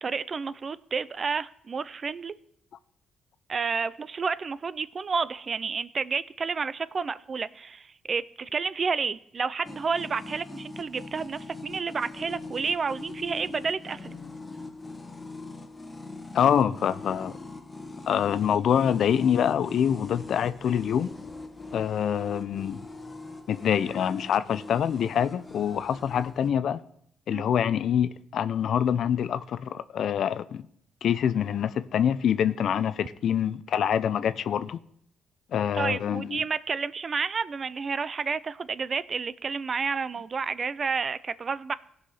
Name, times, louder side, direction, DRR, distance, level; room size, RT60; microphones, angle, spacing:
voice 1, 0.0-2.3 3.5-14.2 27.3-27.4 35.7-41.7, right 5 dB, 40° right, 0.4 m, -30 dB
sound 1, 9.6-26.5, left 3 dB, 20° left, 1.1 m, -42 dB
voice 2, 16.3-17.4 18.1-21.1 21.7-22.8 23.5-26.8 27.3-30.6 31.0-34.8 35.5-36.4, left 9 dB, 65° left, 0.5 m, -25 dB
16.5 x 5.6 x 4.3 m
cardioid pair, 90°, 0 cm